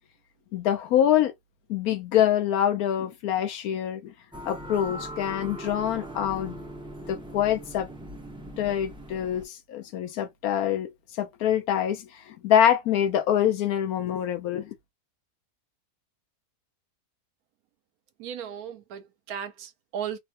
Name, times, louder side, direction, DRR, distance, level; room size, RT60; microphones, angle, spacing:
voice 1, 0.5-1.3 1.7-4.1 4.4-6.6 7.1-7.9 8.6-10.9 11.2-14.7, left 10 dB, 75° left, 1.1 m, -25 dB
sound 1, 4.3-9.4, right 1 dB, 10° right, 0.3 m, -40 dB
voice 2, 18.2-20.2, right 8 dB, 75° right, 1.1 m, -36 dB
3.1 x 2.2 x 2.7 m
omnidirectional pair, 1.7 m